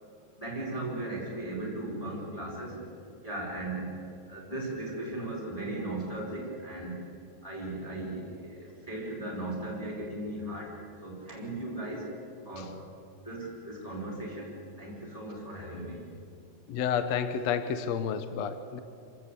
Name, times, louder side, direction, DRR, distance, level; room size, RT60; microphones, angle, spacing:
voice 1, 0.4-2.8 3.2-3.9 4.3-7.0 7.4-10.7 11.0-12.1 12.4-12.8 13.2-16.0, right 1 dB, 10° left, -4 dB, 4.6 m, -37 dB
voice 2, 16.7-18.8, left 7 dB, 70° left, 10 dB, 1.8 m, -30 dB
26.0 x 17.5 x 8.3 m, 2.4 s
omnidirectional pair, 3.8 m